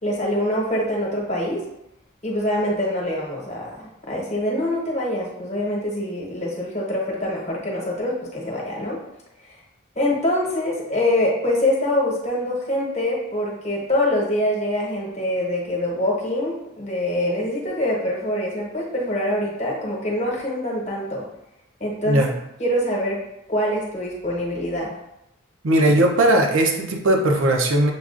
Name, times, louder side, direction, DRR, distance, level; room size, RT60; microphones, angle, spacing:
voice 1, 0.0-1.6 2.2-9.0 9.9-21.2 21.8-22.2 22.6-23.2 23.5-24.9, left 1 dB, 35° left, -3 dB, 1.0 m, -24 dB
voice 2, 25.6-27.9, right 1 dB, 70° right, 2 dB, 0.6 m, -18 dB
6.8 x 2.3 x 2.4 m, 0.81 s
head